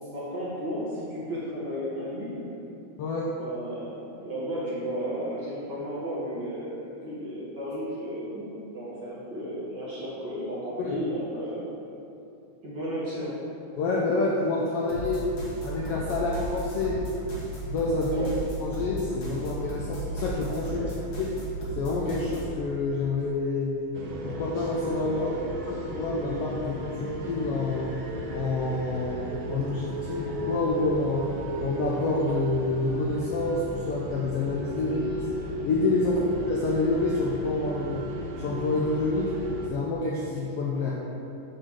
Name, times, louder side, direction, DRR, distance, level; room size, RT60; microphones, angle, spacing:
voice 1, 0.1-2.5 3.3-8.4 8.7-11.6 12.6-13.3 18.1-18.3 20.7-20.9 25.2-25.3 36.1-36.2, equal, 40° right, -9 dB, 2.0 m, -34 dB
voice 2, 3.0-3.3 10.8-11.0 13.8-15.3 15.6-17.0 17.6-18.3 18.6-21.3 21.8-23.8 24.2-25.3 25.7-27.9 28.3-31.3 31.6-35.3 35.6-38.1 38.4-39.3 39.7-41.0, left 3 dB, 80° left, -3 dB, 1.4 m, -28 dB
sound 1, 14.9-22.5, right 1 dB, 50° left, 2.2 m, -35 dB
sound 2, 23.9-39.7, right 1 dB, 75° right, 1.2 m, -34 dB
7.6 x 3.9 x 6.3 m, 2.8 s
omnidirectional pair, 3.4 m